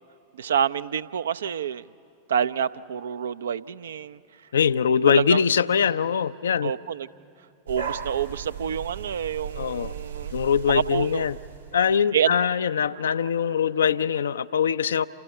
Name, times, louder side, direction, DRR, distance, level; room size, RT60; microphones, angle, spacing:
voice 1, 0.4-1.8 2.3-4.2 5.1-5.4 6.6-7.1 7.7-10.3 10.7-11.2 12.1-12.3, right 8 dB, 65° right, 15 dB, 0.4 m, -27 dB
voice 2, 4.5-6.7 9.6-9.9 10.3-11.4 11.7-15.1, left 7 dB, 65° left, 14 dB, 0.5 m, -22 dB
sound 1, 7.7-11.9, right 7 dB, 80° right, 1.6 m, -37 dB
28.5 x 28.0 x 5.6 m, 2.9 s
figure-of-eight pair, 90°, 0 cm